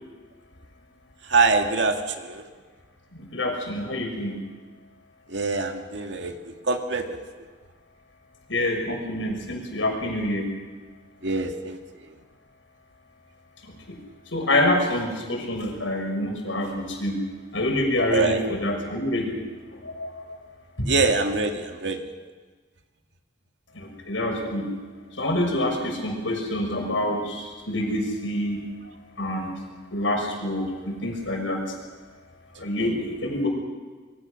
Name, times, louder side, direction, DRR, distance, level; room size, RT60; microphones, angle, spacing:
voice 1, 1.3-2.4 5.3-7.2 11.2-11.8 18.1-18.4 20.9-22.0 32.8-32.9, right 3 dB, 65° right, 4 dB, 2.2 m, -24 dB
voice 2, 3.1-4.4 8.5-10.5 13.9-14.0 14.3-17.2 17.5-19.3 19.7-20.4 20.8-20.9 23.7-24.7 25.2-28.6 29.2-29.5 29.9-31.6 32.6-33.5, left 1 dB, 85° left, 2 dB, 6.1 m, -26 dB
25.5 x 22.5 x 6.4 m, 1.4 s
head